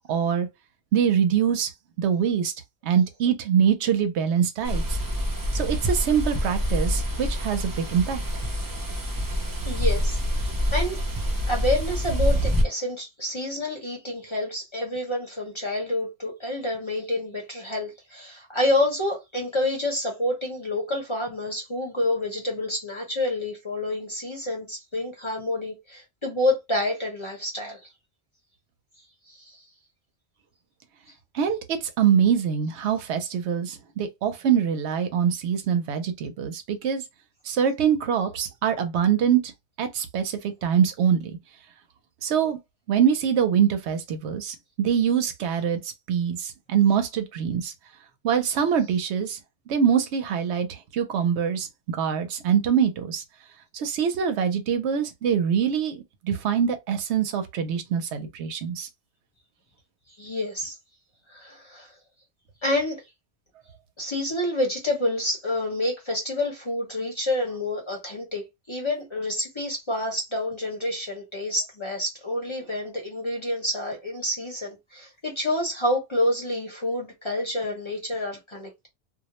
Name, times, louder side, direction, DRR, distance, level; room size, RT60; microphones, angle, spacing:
voice 1, 0.1-0.5 0.9-1.7 2.0-2.5 2.8-5.0 5.5-8.2 31.3-37.0 37.5-39.5 39.8-41.4 42.2-42.6 42.9-45.8 46.1-47.7 48.2-49.4 49.7-53.2 53.7-58.9, right 8 dB, 75° right, 0.8 m, -24 dB
sound 1, 4.7-12.6, equal, 35° right, 0.3 m, -26 dB
voice 2, 9.6-11.0 11.5-27.9 29.3-29.6 60.2-60.8 61.3-61.9 62.6-63.0 64.0-78.9, left 1 dB, 30° left, 0.7 m, -28 dB
2.4 x 2.0 x 2.9 m
omnidirectional pair, 1.2 m